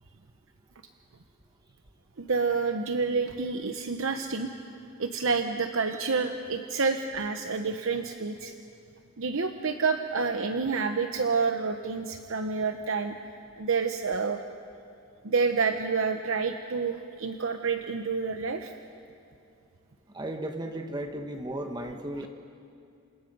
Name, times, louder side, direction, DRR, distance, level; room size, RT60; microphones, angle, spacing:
voice 1, 2.2-4.5 5.0-8.5 9.2-13.1 13.6-14.4 15.2-18.7, right 4 dB, 65° right, 6 dB, 0.9 m, -28 dB
voice 2, 20.1-22.3, right 1 dB, 20° right, 5 dB, 1.1 m, -35 dB
29.0 x 26.5 x 5.4 m, 2.5 s
head